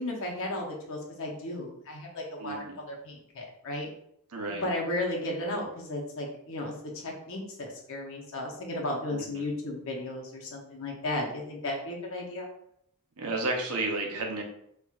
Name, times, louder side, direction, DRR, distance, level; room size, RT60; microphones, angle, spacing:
voice 1, 0.0-3.9 4.5-12.5, left 1 dB, 60° left, 0 dB, 0.8 m, -34 dB
voice 2, 2.4-2.8 4.3-4.7 9.1-9.5 13.2-14.4, right 2 dB, 75° right, 2 dB, 0.7 m, -32 dB
4.4 x 2.4 x 2.4 m, 0.75 s
head